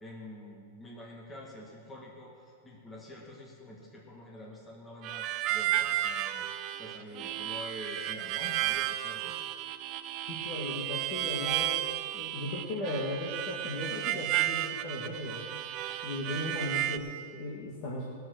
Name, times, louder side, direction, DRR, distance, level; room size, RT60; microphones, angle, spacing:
voice 1, 0.0-6.5 6.8-9.3, left 1 dB, 10° left, -2 dB, 1.4 m, -46 dB
Harmonica, 5.0-17.0, right 13 dB, 25° right, 0.4 m, -33 dB
voice 2, 10.2-15.4 16.0-18.0, left 1 dB, 30° left, -4 dB, 1.5 m, -37 dB
18.0 x 6.7 x 6.3 m, 2.2 s
supercardioid pair, 180°, 0 cm